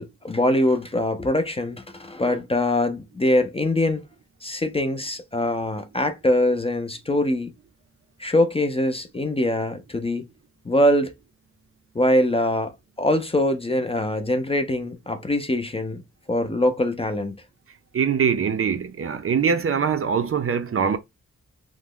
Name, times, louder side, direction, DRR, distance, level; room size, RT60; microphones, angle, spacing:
voice 1, 0.0-4.0 4.4-7.5 8.2-10.3 10.6-11.1 11.9-16.0 16.3-17.4, left 1 dB, 20° left, 0.4 m, -23 dB
voice 2, 17.9-21.0, right 6 dB, 50° right, 0.4 m, -23 dB
3.0 x 2.1 x 3.5 m
wide cardioid pair, 145°, 29 cm